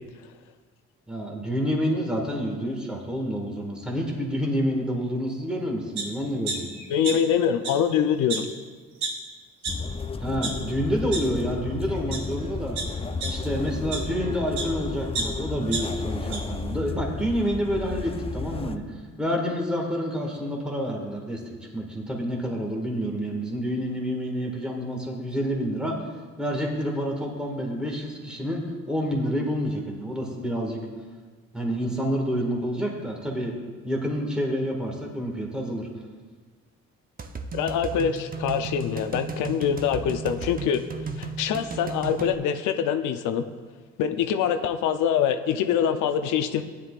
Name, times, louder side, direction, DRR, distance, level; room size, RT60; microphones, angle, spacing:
voice 1, 1.1-6.6 10.2-12.8 13.3-18.8 19.2-21.4 21.7-26.0 26.4-28.6 28.9-30.8 31.5-33.5 33.8-35.9, equal, 5° right, -1 dB, 1.8 m, -28 dB
sound 1, 6.0-6.1 6.5-7.4 7.6-7.7 8.3-8.4 9.0-9.1 9.6-9.7 10.2-10.5 11.1-11.2 11.9-12.2 12.8-14.7 15.1-16.4 16.8-16.9, right 4 dB, 75° right, 2.8 m, -31 dB
voice 2, 6.9-8.5 37.5-40.8 41.2-43.4 44.0-46.6, left 8 dB, 90° left, 8 dB, 0.6 m, -24 dB
sound 2, 9.7-18.8, left 4 dB, 20° left, 0.5 m, -33 dB
sound 3, 37.2-42.3, right 4 dB, 30° right, 0.7 m, -35 dB
15.0 x 10.0 x 2.5 m, 1.5 s
cardioid pair, 90°, 30 cm